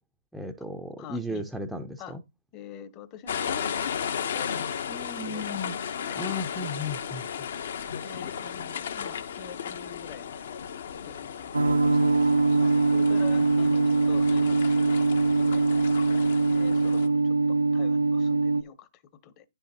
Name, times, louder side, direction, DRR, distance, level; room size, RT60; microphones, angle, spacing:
voice 1, 0.3-2.2 4.9-5.8 6.2-7.4, left 1 dB, ahead, 0.5 m, -35 dB
voice 2, 1.0-1.4 2.0-2.2 2.5-3.9 4.3-5.4 6.0-6.2 8.0-10.6 11.0-15.0 15.3-15.6 16.5-19.4, left 8 dB, 25° left, 0.9 m, -45 dB
sound 1, 3.3-17.1, left 7 dB, 50° left, 0.8 m, -35 dB
sound 2, 11.5-18.6, right 3 dB, 90° right, 0.5 m, -22 dB
9.9 x 5.5 x 2.8 m
figure-of-eight pair, 145°, 0 cm